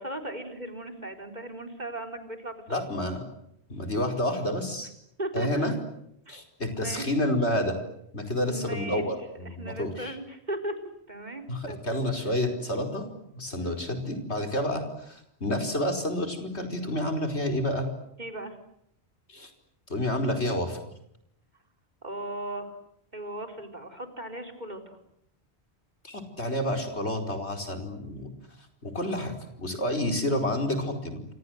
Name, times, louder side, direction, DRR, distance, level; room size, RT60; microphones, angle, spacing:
voice 1, 0.0-2.8 5.2-5.5 6.3-6.4 6.7-7.0 8.4-9.0 9.4-10.7 11.1-11.8 13.6-13.7 18.2-18.6 22.0-22.7 23.1-25.0, right 1 dB, 40° right, 5 dB, 4.2 m, -37 dB
voice 2, 2.7-3.2 3.7-4.9 5.3-5.7 6.3-7.8 8.1-10.1 11.5-13.1 13.3-17.9 19.3-19.5 19.9-20.8 26.0-28.3 28.8-29.3 29.6-31.3, left 1 dB, 80° left, 5 dB, 5.2 m, -29 dB
28.5 x 26.5 x 7.9 m, 0.76 s
omnidirectional pair, 1.1 m